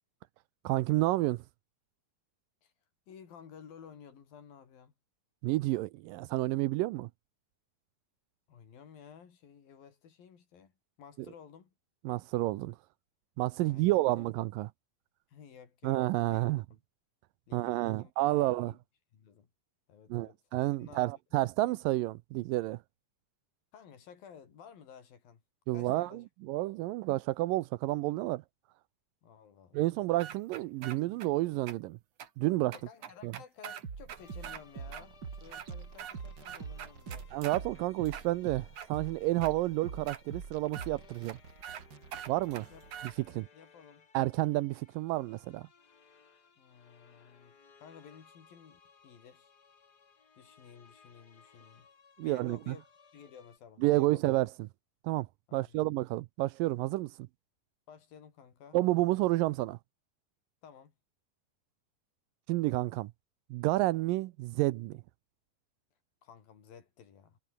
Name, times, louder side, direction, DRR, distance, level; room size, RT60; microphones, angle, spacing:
voice 1, 0.6-1.4 5.4-7.1 12.1-12.8 13.4-14.7 15.8-16.6 17.5-18.7 20.1-22.8 25.7-28.4 29.7-32.0 32.4-32.7 33.2-33.3 37.3-41.4 42.3-42.7 43.3-43.5 44.1-45.7 52.2-52.8 53.8-54.5 55.0-55.3 55.5-57.1 58.7-59.8 62.5-63.1 63.5-65.0, right 18 dB, 80° right, 2.2 m, -30 dB
voice 2, 3.1-4.9 8.5-10.7 11.0-11.7 13.6-14.3 15.3-16.4 16.7-16.8 17.5-18.8 19.1-19.5 19.9-20.4 20.8-21.1 23.7-25.4 25.7-26.3 29.2-30.0 32.7-37.3 42.7-42.9 43.5-44.1 46.6-49.5 50.4-51.9 52.2-52.8 53.1-54.2 55.5-55.8 57.9-58.8 60.6-61.0 66.2-67.4, left 7 dB, 70° left, 5.2 m, -54 dB
sound 1, 30.2-31.3 31.7-31.8 32.2-32.3 32.7-34.6 34.9-35.0 35.4-36.2 36.4-37.6 38.1-38.9 39.4-39.5 40.1-40.2 40.7-40.9 41.3-41.4 41.6-41.8 42.1-43.1, right 9 dB, 55° right, 3.1 m, -43 dB
sound 2, 33.8-43.5, right 5 dB, 35° right, 2.4 m, -45 dB
sound 3, 34.2-53.6, left 6 dB, 35° left, 1.9 m, -62 dB
omnidirectional pair, 4.3 m